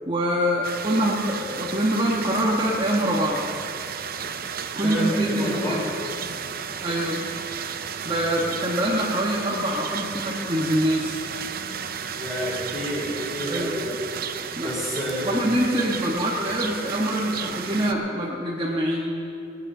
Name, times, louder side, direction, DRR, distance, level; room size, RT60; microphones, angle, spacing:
voice 1, 0.1-3.5 4.8-5.9 6.8-7.2 8.0-11.3 13.4-13.8 14.6-14.8 15.2-19.1, equal, 25° right, -4 dB, 1.4 m, -25 dB
sound 1, 0.6-17.9, right 7 dB, 50° right, 0.7 m, -33 dB
voice 2, 4.8-5.9 12.2-14.0 14.6-15.4, equal, 15° left, -9 dB, 3.6 m, -29 dB
19.0 x 10.0 x 6.7 m, 2.8 s
head